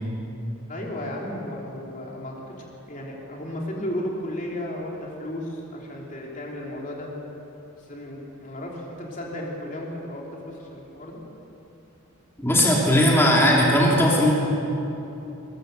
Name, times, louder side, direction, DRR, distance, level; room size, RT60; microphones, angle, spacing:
voice 1, 0.7-7.1 7.9-11.2, left 1 dB, 35° left, -2 dB, 3.4 m, -34 dB
voice 2, 12.4-14.3, left 1 dB, 10° left, -4 dB, 3.1 m, -18 dB
22.5 x 21.5 x 6.9 m, 3.0 s
head